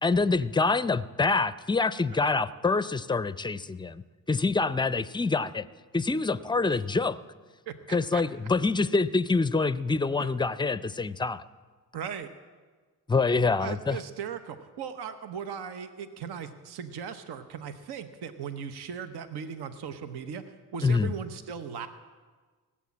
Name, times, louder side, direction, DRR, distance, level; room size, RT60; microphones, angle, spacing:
voice 1, 0.0-5.7 5.9-7.2 7.9-11.4 13.1-14.0 20.8-21.1, left 4 dB, 10° left, 16 dB, 0.4 m, -26 dB
voice 2, 7.7-8.2 10.2-10.3 11.9-12.3 13.6-21.9, right 7 dB, 75° right, 10 dB, 1.0 m, -38 dB
18.0 x 7.4 x 8.5 m, 1.4 s
cardioid pair, 70°, 40 cm